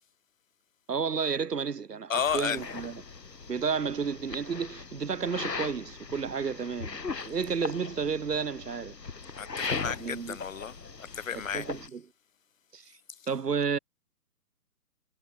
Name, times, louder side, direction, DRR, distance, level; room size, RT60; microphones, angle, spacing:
voice 1, 0.9-3.0 3.5-7.0 7.2-8.9 9.8-10.4 11.5-12.0 12.7-12.8 13.3-13.8, right 6 dB, 75° right, 1.4 m, -31 dB
voice 2, 2.1-2.6 9.4-11.7, left 7 dB, 55° left, 1.8 m, -33 dB
sound 1, 2.2-11.9, left 4 dB, 85° left, 1.7 m, -39 dB
figure-of-eight pair, 140°, 48 cm